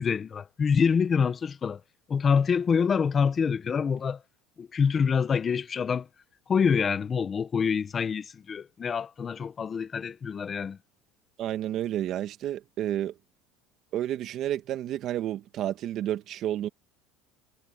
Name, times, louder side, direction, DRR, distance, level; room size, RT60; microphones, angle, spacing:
voice 1, 0.0-1.8 2.1-4.2 4.6-6.1 6.5-10.8, left 6 dB, 25° left, 1.1 m, -26 dB
voice 2, 11.4-13.1 13.9-16.7, right 12 dB, 45° right, 1.6 m, -30 dB
cardioid pair, 140°, 0 cm